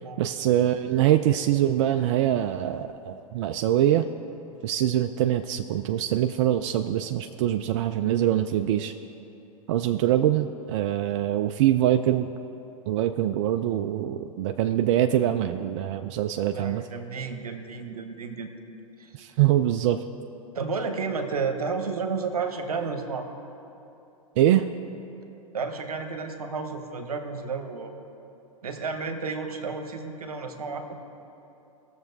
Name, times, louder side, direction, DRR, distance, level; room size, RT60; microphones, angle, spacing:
voice 1, 0.2-4.1 4.6-8.9 9.7-12.3 12.9-16.8 19.1-20.0 24.4-24.7, right 12 dB, 50° right, 7 dB, 0.4 m, -24 dB
voice 2, 16.5-18.5 19.0-19.1 20.5-23.3 25.5-28.1 28.6-30.9, right 4 dB, 85° right, 6 dB, 1.0 m, -32 dB
17.5 x 6.9 x 2.7 m, 2.9 s
hypercardioid pair, 105°, 19 cm